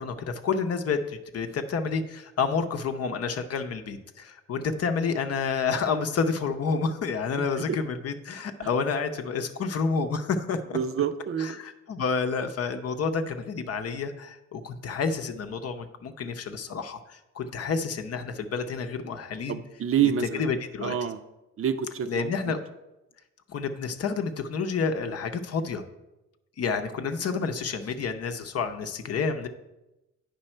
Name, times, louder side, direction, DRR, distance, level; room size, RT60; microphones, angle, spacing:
voice 1, 0.0-10.8 11.4-19.6 20.0-20.1 20.4-21.1 22.1-22.6 23.5-25.8 26.6-29.5, left 5 dB, 55° left, 8 dB, 0.8 m, -29 dB
voice 2, 10.7-11.6 19.5-20.4 20.8-21.2 21.6-22.5, right 8 dB, 45° right, 10 dB, 0.6 m, -28 dB
8.9 x 5.4 x 4.4 m, 0.99 s
cardioid pair, 90°, 30 cm